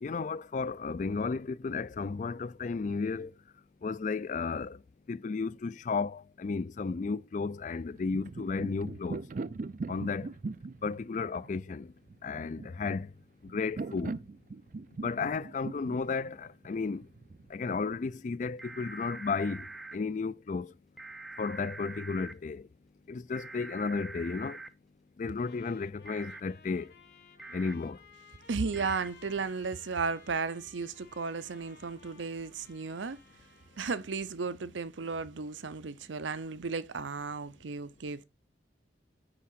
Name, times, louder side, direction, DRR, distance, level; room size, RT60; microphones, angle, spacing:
voice 1, 0.0-3.3 3.8-4.8 5.1-9.2 9.9-10.3 10.8-11.9 12.2-13.1 13.4-14.1 15.0-17.0 17.5-20.7 21.4-22.7 23.1-24.6 25.2-26.9 27.5-28.0, left 4 dB, 40° left, 0.3 m, -33 dB
sound 1, 7.8-17.5, right 3 dB, 45° right, 0.4 m, -41 dB
sound 2, 18.6-20.0 21.0-22.3 23.3-24.7 26.1-26.4 27.4-27.7 28.7-29.1, right 3 dB, ahead, 0.7 m, -45 dB
Trumpet, 25.4-33.9, left 6 dB, 55° left, 2.5 m, -58 dB
voice 2, 28.5-33.2 33.8-38.2, right 4 dB, 85° right, 0.7 m, -34 dB
9.9 x 3.6 x 5.8 m
head